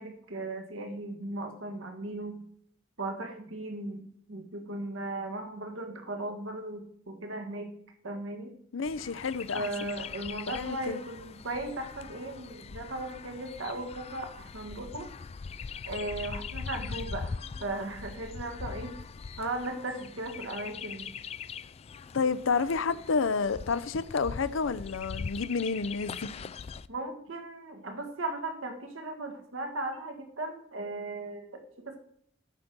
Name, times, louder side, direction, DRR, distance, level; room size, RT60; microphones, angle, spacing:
voice 1, 0.0-2.4 3.0-7.7 8.0-8.5 9.5-15.1 15.8-18.9 19.4-21.1 26.9-32.0, right 2 dB, 90° right, 1.6 m, -37 dB
voice 2, 8.7-9.9 10.5-11.0 22.1-26.5, left 4 dB, 75° left, 0.6 m, -30 dB
Chirp tweet, 8.8-26.9, left 5 dB, 30° left, 0.3 m, -42 dB
12.5 x 5.2 x 6.1 m
head